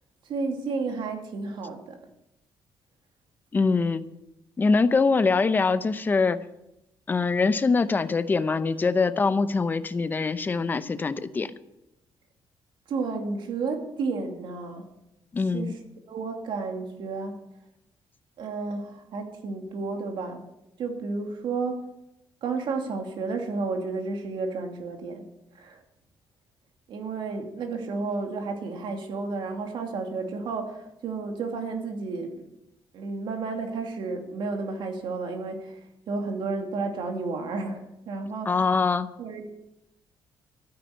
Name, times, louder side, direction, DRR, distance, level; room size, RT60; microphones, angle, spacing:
voice 1, 0.2-2.0 12.9-14.9 15.5-15.8 16.1-17.4 18.4-20.4 20.8-21.9 22.4-25.3 25.5-25.8 26.9-32.4 32.9-35.8 36.1-38.6 39.2-39.4, right 4 dB, 65° right, 4 dB, 2.5 m, -32 dB
voice 2, 3.5-4.1 4.6-6.4 7.1-11.5 15.3-15.7 38.5-39.1, left 4 dB, 20° left, 13 dB, 0.7 m, -23 dB
13.5 x 9.9 x 8.2 m, 0.88 s
cardioid pair, 170°, 9 cm